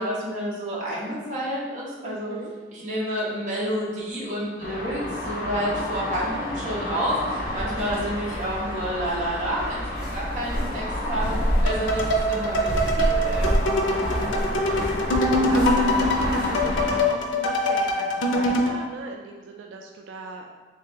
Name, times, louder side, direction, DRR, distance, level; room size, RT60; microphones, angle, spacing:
voice 1, 0.0-2.4 2.7-11.4 11.6-13.5, equal, 40° right, -6 dB, 1.0 m, -29 dB
voice 2, 2.0-2.5 14.2-20.5, right 3 dB, 90° right, 2 dB, 0.3 m, -37 dB
sound 1, 4.6-17.0, left 1 dB, 45° left, 0.8 m, -31 dB
sound 2, 7.4-16.9, equal, 5° right, 0.9 m, -29 dB
sound 3, 11.7-18.8, left 1 dB, 90° left, 0.5 m, -24 dB
3.2 x 2.8 x 3.7 m, 1.4 s
head